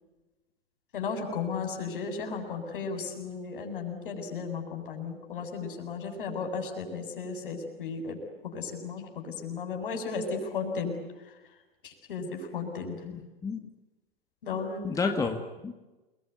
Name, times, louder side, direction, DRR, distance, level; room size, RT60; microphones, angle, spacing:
voice 1, 0.9-8.2 8.4-10.9 11.8-13.0 14.4-15.2, left 5 dB, 60° left, 4 dB, 7.6 m, -35 dB
voice 2, 13.0-13.7 14.8-15.7, left 5 dB, 10° left, 5 dB, 2.0 m, -31 dB
29.0 x 22.0 x 9.5 m, 1.1 s
figure-of-eight pair, 100°, 30 cm